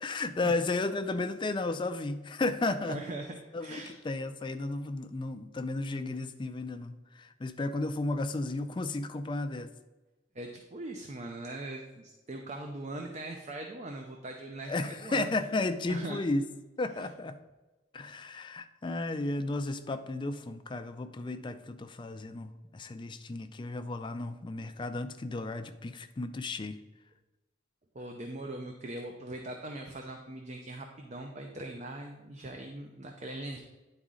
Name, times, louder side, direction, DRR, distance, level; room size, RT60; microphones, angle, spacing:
voice 1, 0.0-3.0 3.5-9.7 14.7-16.4 16.8-17.4 17.9-26.8, left 2 dB, 25° left, 9 dB, 0.4 m, -33 dB
voice 2, 2.8-4.0 10.3-15.3 15.9-16.2 16.9-17.1 27.9-33.6, right 2 dB, 35° right, 3 dB, 0.5 m, -41 dB
9.9 x 4.1 x 3.7 m, 1.1 s
head